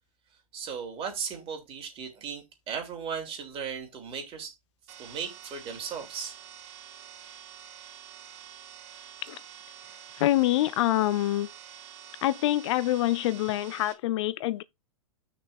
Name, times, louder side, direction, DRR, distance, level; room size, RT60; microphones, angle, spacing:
voice 1, 0.5-4.5 5.0-6.4, right 6 dB, 30° right, 3.4 m, -36 dB
sound 1, 4.9-13.9, right 9 dB, 50° right, 2.6 m, -48 dB
voice 2, 10.2-11.5 12.2-14.6, left 15 dB, 55° left, 0.5 m, -26 dB
6.2 x 4.5 x 6.6 m
hypercardioid pair, 110°, 18 cm